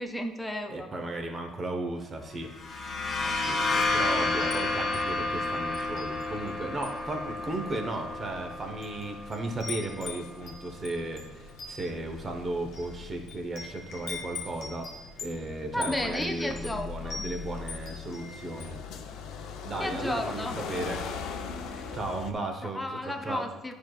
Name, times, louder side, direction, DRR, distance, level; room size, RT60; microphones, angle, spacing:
voice 1, 0.0-0.9 3.4-4.0 15.7-17.3 19.8-20.6 21.7-21.9 22.6-23.7, left 1 dB, 5° left, 4 dB, 0.4 m, -34 dB
voice 2, 0.7-14.9 15.2-19.0 19.6-21.0 21.9-23.5, right 2 dB, 25° right, 5 dB, 0.9 m, -35 dB
sound 1, 2.5-10.1, left 2 dB, 30° left, 0.8 m, -31 dB
sound 2, 3.0-22.3, left 5 dB, 70° left, 0.6 m, -43 dB
Wind chime, 3.3-4.6 4.9-5.2 5.7-6.5 6.8-7.1 7.8-7.9 8.6-9.0 9.3-18.8, left 4 dB, 50° left, 1.4 m, -42 dB
10.0 x 4.7 x 2.4 m, 1.1 s
cardioid pair, 135°, 0 cm